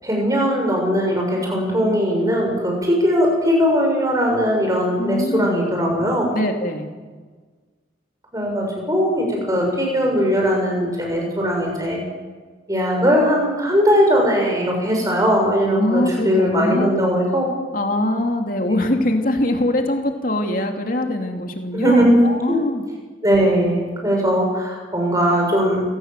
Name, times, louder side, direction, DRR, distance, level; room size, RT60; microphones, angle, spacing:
voice 1, 0.0-6.3 8.3-12.0 12.7-17.4 18.7-18.8 21.7-22.2 22.5-22.6 23.2-25.8, equal, 20° right, 0 dB, 7.1 m, -19 dB
voice 2, 5.0-5.6 6.3-6.9 15.7-16.9 17.7-22.8, left 1 dB, 45° left, 4 dB, 3.0 m, -22 dB
29.0 x 18.0 x 7.7 m, 1.4 s
head